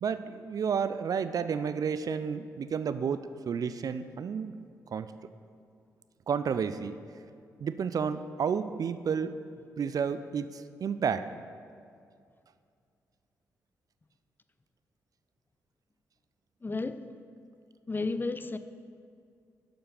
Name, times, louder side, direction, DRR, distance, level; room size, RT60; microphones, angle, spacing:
voice 1, 0.0-4.5 4.9-5.1 6.3-7.0 7.6-9.4 9.8-11.3, right 6 dB, 55° right, 12 dB, 0.4 m, -31 dB
voice 2, 16.6-17.0 17.9-18.6, left 3 dB, 25° left, 11 dB, 0.4 m, -32 dB
6.9 x 5.1 x 5.7 m, 2.3 s
hypercardioid pair, 40°, 8 cm